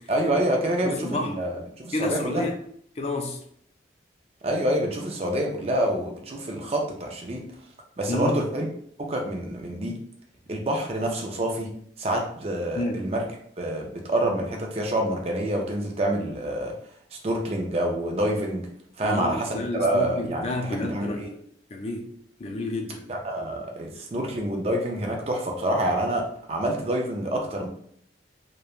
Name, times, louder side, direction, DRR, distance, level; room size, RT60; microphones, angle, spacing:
voice 1, 0.1-2.4 4.4-7.4 8.0-8.7 9.0-10.0 10.5-11.7 12.0-13.2 13.6-16.7 17.1-18.6 19.0-21.3 23.1-27.7, right 1 dB, 35° right, 1 dB, 0.4 m, -27 dB
voice 2, 0.8-1.3 1.9-2.6 3.0-3.4 8.1-8.4 12.8-13.0 19.0-21.4 21.7-22.1 22.4-23.0, left 2 dB, 35° left, 2 dB, 0.4 m, -30 dB
3.1 x 2.1 x 2.4 m, 0.65 s
head